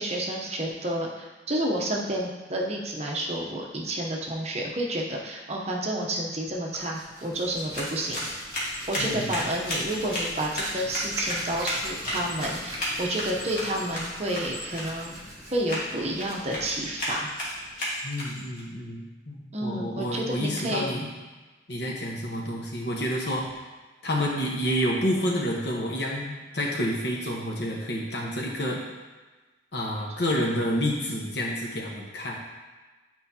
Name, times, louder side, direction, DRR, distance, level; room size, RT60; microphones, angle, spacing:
voice 1, 0.0-8.3 8.9-15.2 15.5-17.3 19.5-20.9, right 1 dB, 35° right, -1 dB, 0.8 m, -30 dB
Hands, 6.5-17.9, right 1 dB, 20° right, 1.1 m, -42 dB
sound 1, 7.4-18.6, left 1 dB, 45° left, 1.6 m, -34 dB
voice 2, 9.0-9.3 18.0-21.1 21.7-23.6 24.0-28.8 29.7-32.3, equal, 65° left, -2 dB, 1.1 m, -29 dB
8.1 x 4.5 x 2.8 m, 1.2 s
head